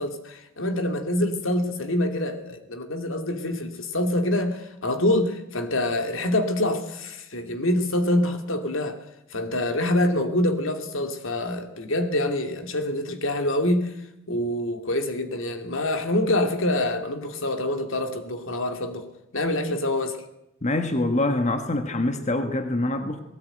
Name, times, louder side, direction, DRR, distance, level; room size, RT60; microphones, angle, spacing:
voice 1, 0.0-9.0 9.3-13.9 14.3-19.1 19.3-20.2, left 1 dB, 70° left, 2.6 m, -25 dB
voice 2, 20.6-23.2, left 2 dB, 35° left, 1.4 m, -25 dB
19.0 x 18.0 x 9.1 m
head